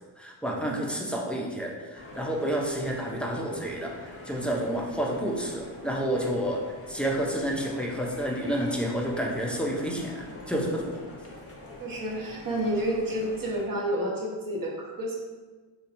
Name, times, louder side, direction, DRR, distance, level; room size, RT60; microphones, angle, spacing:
voice 1, 0.2-6.6 6.9-11.0, right 1 dB, ahead, -2 dB, 0.4 m, -30 dB
sound 1, 1.9-13.6, left 2 dB, 30° left, 0.8 m, -44 dB
voice 2, 11.8-15.1, right 1 dB, 45° right, -1 dB, 0.9 m, -30 dB
4.4 x 2.8 x 2.5 m, 1.4 s
cardioid pair, 100°, 46 cm